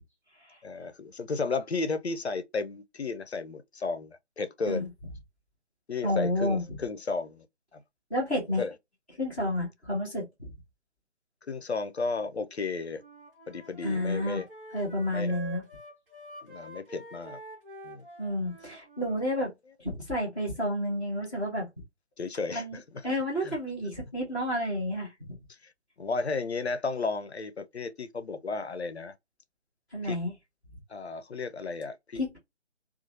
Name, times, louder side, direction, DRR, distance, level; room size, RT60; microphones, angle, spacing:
voice 1, 0.6-4.9 5.9-7.5 7.7-7.8 8.6-8.7 11.5-13.0 13.5-14.5 15.1-15.3 16.4-17.4 17.8-18.0 22.2-22.6 23.4-23.5 26.0-29.1 30.0-30.2 30.9-32.4, left 4 dB, 65° left, 0.6 m, -33 dB
voice 2, 6.0-6.6 8.1-8.6 9.2-10.5 13.8-14.4 14.7-15.6 18.2-19.5 19.8-21.7 22.5-25.4 29.9-30.3 32.1-32.4, left 1 dB, 10° right, 0.8 m, -30 dB
Wind instrument woodwind instrument, 12.9-19.3, right 2 dB, 50° right, 1.3 m, -47 dB
2.9 x 2.3 x 2.6 m
figure-of-eight pair, 150°, 35 cm